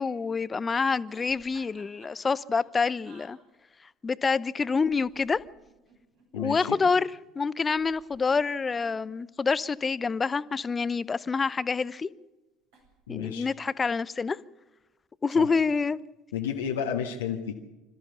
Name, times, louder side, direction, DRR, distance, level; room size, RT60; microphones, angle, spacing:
voice 1, 0.0-3.4 4.0-5.4 6.3-7.1 7.4-12.1 13.1-14.4 15.2-16.0, left 5 dB, 25° left, 0.7 m, -27 dB
sound 1, 1.1-3.3 4.7-6.3 7.5-9.8 10.7-11.7 12.7-12.9 13.2-13.6, right 3 dB, 70° right, 7.8 m, -57 dB
voice 2, 6.3-6.8 13.1-13.5 15.3-15.5 16.3-17.6, left 8 dB, 80° left, 1.5 m, -31 dB
27.0 x 14.0 x 7.0 m
figure-of-eight pair, 65°, 0 cm